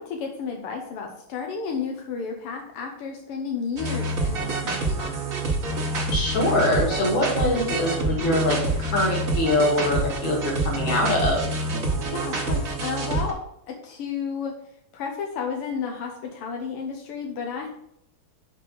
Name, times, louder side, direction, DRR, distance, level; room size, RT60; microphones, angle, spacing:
voice 1, 0.0-5.2 12.1-13.4 13.7-14.6 14.9-17.7, left 6 dB, 90° left, 2 dB, 1.8 m, -32 dB
sound 1, 3.8-13.3, right 2 dB, 40° right, 1.6 m, -27 dB
voice 2, 6.1-11.5, left 1 dB, 65° left, 0 dB, 2.6 m, -23 dB
5.6 x 5.1 x 6.7 m, 0.73 s
omnidirectional pair, 2.4 m